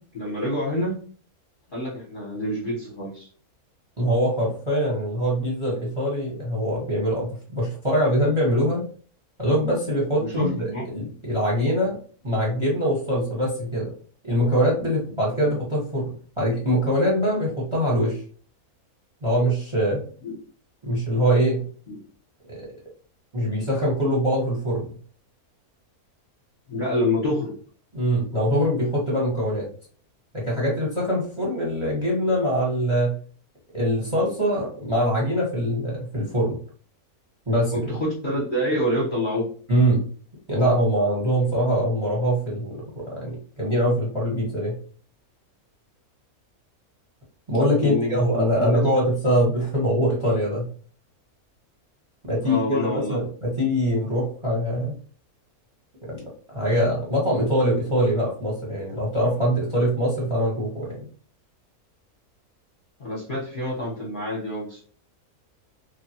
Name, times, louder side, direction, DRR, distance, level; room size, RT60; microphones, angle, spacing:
voice 1, 0.1-1.0 1.7-3.3 10.2-10.9 20.2-20.4 21.9-22.0 26.7-27.6 37.7-39.5 47.8-49.0 52.4-53.2 63.0-64.8, left 1 dB, 45° left, -5 dB, 0.8 m, -27 dB
voice 2, 4.0-8.9 9.4-12.0 12.2-13.9 14.2-18.2 19.2-20.0 20.8-21.6 22.5-22.6 23.3-24.9 27.9-29.7 30.3-33.1 33.7-36.6 37.5-37.7 39.7-40.1 40.5-44.8 47.5-50.7 52.2-54.9 56.1-56.2 56.5-61.0, equal, 25° right, -4 dB, 0.9 m, -23 dB
3.1 x 2.2 x 2.7 m, 0.43 s
omnidirectional pair, 1.6 m